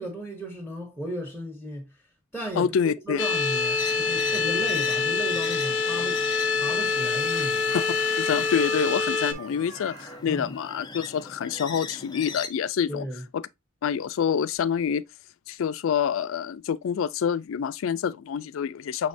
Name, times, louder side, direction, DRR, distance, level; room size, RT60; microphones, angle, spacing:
voice 1, 0.0-1.9 2.3-6.2 6.6-7.7 10.3-10.5 12.9-13.2, equal, 5° right, 0.9 m, -35 dB
voice 2, 2.6-3.3 7.7-13.1 13.3-13.4 13.8-15.0 15.5-19.1, left 7 dB, 80° left, 0.3 m, -27 dB
sound 1, 3.2-9.3, left 4 dB, 60° left, 0.8 m, -25 dB
sound 2, 3.8-12.5, left 4 dB, 20° left, 0.5 m, -40 dB
Chicken rooster, 7.3-10.2, right 5 dB, 70° right, 1.6 m, -42 dB
6.2 x 3.1 x 2.6 m
head